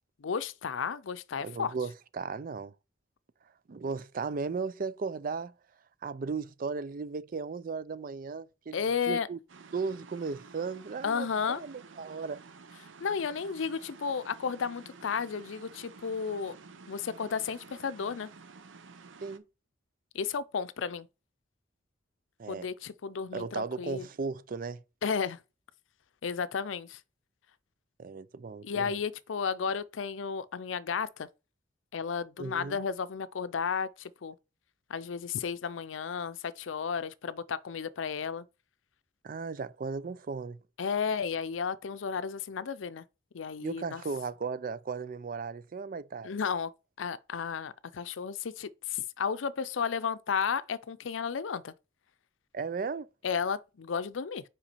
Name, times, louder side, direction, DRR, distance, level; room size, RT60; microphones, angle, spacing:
voice 1, 0.2-1.7 8.7-9.3 11.0-11.6 13.0-16.6 16.9-18.3 20.1-21.1 22.5-24.1 25.0-25.4 26.2-27.0 28.6-31.3 31.9-34.4 34.9-38.5 40.8-43.0 43.3-44.0 46.2-46.7 47.0-51.7 53.2-54.4, left 6 dB, 85° left, 0.5 m, -33 dB
voice 2, 1.4-2.7 3.7-5.5 6.0-8.8 9.1-9.4 9.7-11.3 11.6-12.4 19.2-19.4 22.4-22.7 23.3-24.8 28.0-29.0 32.4-32.8 39.2-40.6 43.6-46.3 52.5-53.1, right 4 dB, 45° right, 0.4 m, -36 dB
sound 1, 9.5-19.4, right 4 dB, 85° right, 0.7 m, -52 dB
5.9 x 5.0 x 4.2 m
head